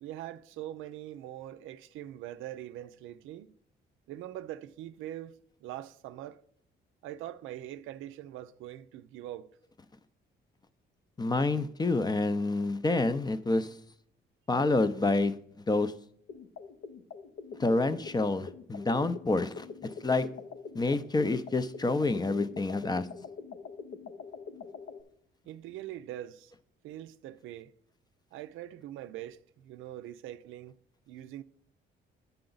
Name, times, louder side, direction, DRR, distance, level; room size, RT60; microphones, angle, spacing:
voice 1, 0.0-3.5 4.1-5.3 5.6-6.4 7.0-9.5 25.5-26.5 26.8-27.7 28.3-30.7 31.1-31.4, right 13 dB, 90° right, 0.4 m, -42 dB
voice 2, 11.2-13.7 14.5-15.4 15.7-15.9 17.6-20.3 20.7-23.1, left 3 dB, 20° left, 0.5 m, -28 dB
sound 1, 16.3-25.0, left 5 dB, 75° left, 0.7 m, -44 dB
8.7 x 6.8 x 3.9 m
cardioid pair, 90°, 20 cm